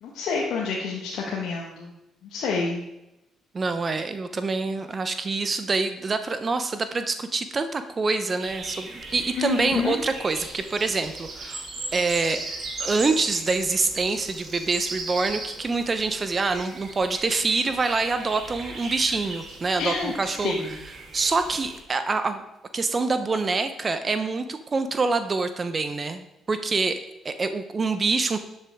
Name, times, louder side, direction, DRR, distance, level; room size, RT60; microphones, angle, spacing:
voice 1, 0.0-1.9 2.2-2.8 9.3-10.0 19.8-20.7, left 4 dB, 65° left, -3 dB, 1.5 m, -28 dB
voice 2, 3.5-11.7 11.9-12.4 12.8-20.5 21.1-22.4 22.7-28.4, right 3 dB, 40° right, 9 dB, 1.0 m, -26 dB
sound 1, 8.4-21.8, right 3 dB, 55° right, 2.6 m, -37 dB
12.0 x 8.0 x 3.7 m, 0.91 s
hypercardioid pair, 45°, 0 cm